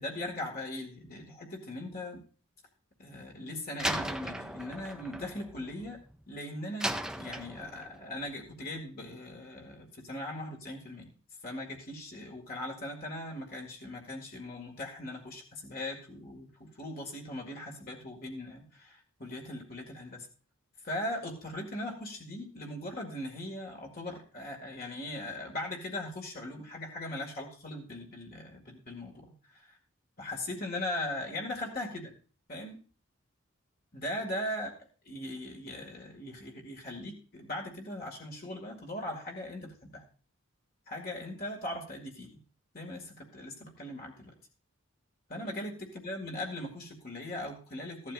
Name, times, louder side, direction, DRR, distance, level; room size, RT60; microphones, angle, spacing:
voice 1, 0.0-2.2 3.0-6.0 6.3-11.1 11.4-20.3 20.8-29.8 30.2-32.1 32.5-32.8 33.9-34.7 35.1-40.0 40.9-42.4 42.7-44.3 45.3-45.8 46.0-48.1, left 1 dB, 40° left, 1 dB, 2.1 m, -39 dB
Slam, 3.8-6.2 6.8-8.0, right 1 dB, 5° right, 0.5 m, -36 dB
15.0 x 11.5 x 2.5 m, 0.38 s
head